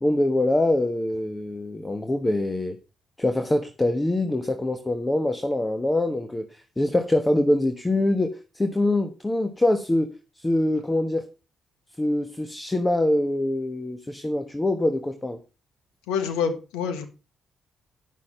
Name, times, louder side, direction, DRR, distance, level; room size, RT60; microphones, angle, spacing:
voice 1, 0.0-2.8 3.2-6.5 6.8-10.1 10.4-11.2 12.0-15.4, left 1 dB, 20° left, 7 dB, 1.2 m, -24 dB
voice 2, 16.1-17.1, left 6 dB, 85° left, 9 dB, 1.4 m, -26 dB
9.4 x 6.4 x 5.6 m, 0.33 s
supercardioid pair, 50°, 0 cm